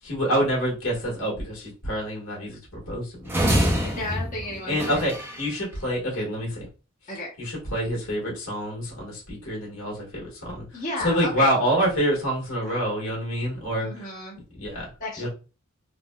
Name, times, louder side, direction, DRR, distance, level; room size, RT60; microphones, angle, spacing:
voice 1, 0.0-3.4 4.7-6.7 7.4-14.2 14.5-14.9 15.2-15.3, equal, 75° left, -4 dB, 1.5 m, -27 dB
sound 1, 3.3-5.5, equal, 10° right, 0.4 m, -25 dB
voice 2, 3.8-5.0 7.1-7.3 10.7-11.5 12.6-12.7 13.8-14.4 15.0-15.3, left 2 dB, 35° left, -6 dB, 0.9 m, -33 dB
3.8 x 2.2 x 2.2 m, 0.33 s
head